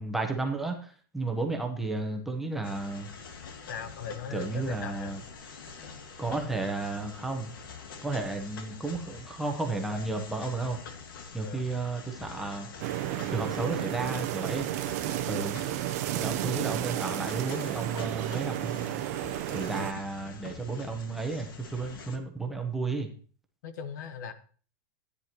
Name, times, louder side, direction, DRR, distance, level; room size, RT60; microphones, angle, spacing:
voice 1, 0.0-3.1 4.3-5.2 6.2-7.5 8.0-10.8 11.3-12.7 13.3-14.7 15.3-15.6 16.1-18.9 19.5-23.1, right 3 dB, ahead, 2 dB, 0.9 m, -33 dB
sound 1, 2.6-22.2, left 5 dB, 80° left, 1.7 m, -46 dB
voice 2, 3.7-5.1 11.4-11.7 19.7-19.9 23.6-24.3, left 7 dB, 60° left, 11 dB, 1.2 m, -39 dB
sound 2, 12.8-19.9, right 14 dB, 45° right, 0.7 m, -32 dB
14.0 x 9.6 x 3.0 m, 0.41 s
supercardioid pair, 170°, 11 cm